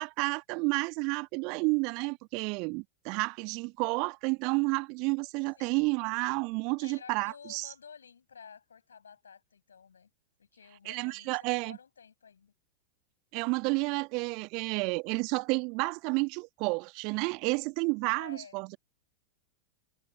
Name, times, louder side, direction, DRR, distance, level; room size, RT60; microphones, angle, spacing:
voice 1, 0.0-7.7 10.9-11.8 13.3-18.8, right 30 dB, 45° right, 1.6 m, -31 dB
voice 2, 6.7-10.1 10.4-12.5 18.1-18.6, left 6 dB, 70° left, 6.0 m, -52 dB
figure-of-eight pair, 90°, 0 cm